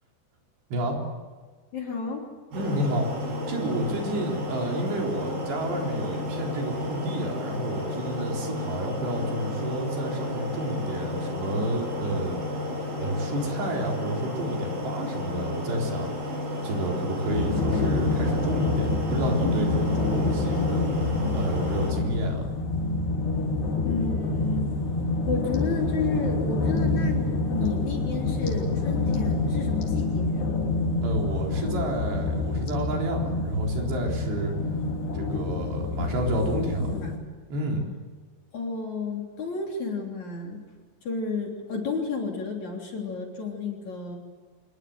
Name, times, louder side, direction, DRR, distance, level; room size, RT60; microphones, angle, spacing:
voice 1, 1.7-2.3 23.8-24.7 25.2-30.5 36.5-37.2 38.5-40.6 41.0-44.2, left 4 dB, 45° left, 0 dB, 4.2 m, -32 dB
sound 1, 2.5-21.9, left 1 dB, 55° right, 9.7 m, -32 dB
voice 2, 2.5-12.4 13.0-22.5 31.0-34.5 35.1-36.9 37.5-37.9, right 1 dB, 70° right, 0 dB, 6.0 m, -30 dB
sound 2, 17.3-37.2, left 3 dB, 65° left, 5.2 m, -27 dB
26.0 x 21.0 x 7.9 m, 1.5 s
omnidirectional pair, 5.1 m